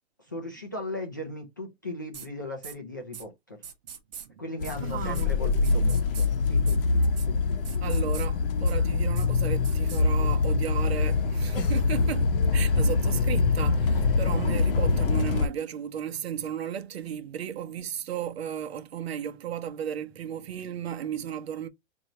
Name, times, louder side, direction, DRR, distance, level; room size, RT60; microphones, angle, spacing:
voice 1, 0.3-3.6 4.4-7.6, left 1 dB, 20° left, 0.3 m, -38 dB
sound 1, 2.1-2.3 2.6-2.7 3.1-3.2 3.6-4.3 4.6-4.8 5.1-5.2 5.6-6.3 6.7-6.8 7.0-7.3 7.6-8.3 8.7-8.8 9.1-9.3 9.6-10.0, right 8 dB, 40° right, 1.0 m, -42 dB
sound 2, 4.6-15.5, left 4 dB, 55° left, 0.8 m, -24 dB
voice 2, 4.8-5.3 7.5-21.7, right 9 dB, 70° right, 0.8 m, -35 dB
4.3 x 2.6 x 2.8 m
hypercardioid pair, 170°, 33 cm